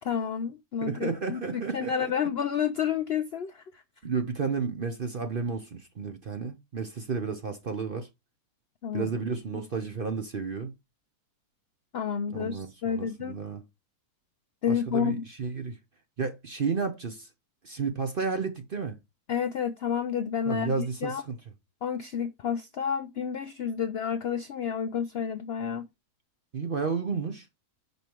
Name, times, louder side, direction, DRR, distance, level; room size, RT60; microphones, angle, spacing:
voice 1, 0.0-3.8 8.8-9.1 9.5-9.6 11.9-13.4 14.6-15.2 19.3-20.7 21.0-21.2 21.8-25.9, left 7 dB, 70° left, 0.6 m, -30 dB
voice 2, 0.8-2.1 4.0-8.1 8.9-10.7 12.3-13.6 14.7-15.8 16.2-17.3 17.6-19.0 20.5-21.4 26.5-27.5, right 5 dB, 45° right, 0.7 m, -32 dB
6.1 x 5.4 x 4.4 m
omnidirectional pair, 1.7 m